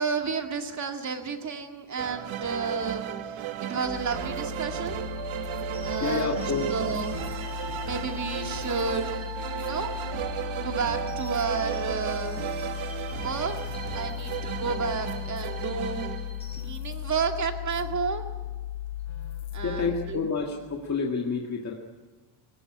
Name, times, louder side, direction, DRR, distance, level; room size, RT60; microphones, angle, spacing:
voice 1, 0.0-5.0 5.8-7.3 7.8-9.9 10.6-12.4 13.1-16.0 16.5-18.3 19.5-20.2, right 5 dB, 35° right, 5 dB, 2.3 m, -31 dB
sound 1, 2.0-16.9, right 10 dB, 70° right, 1.2 m, -35 dB
sound 2, 3.8-20.4, left 13 dB, 65° left, 2.8 m, -37 dB
sound 3, 4.9-16.7, left 2 dB, 10° left, 4.3 m, -49 dB
voice 2, 6.0-6.7 14.1-14.3 19.6-21.7, left 4 dB, 35° left, 0 dB, 2.0 m, -29 dB
22.5 x 19.0 x 9.8 m, 1.3 s
wide cardioid pair, 170°, 49 cm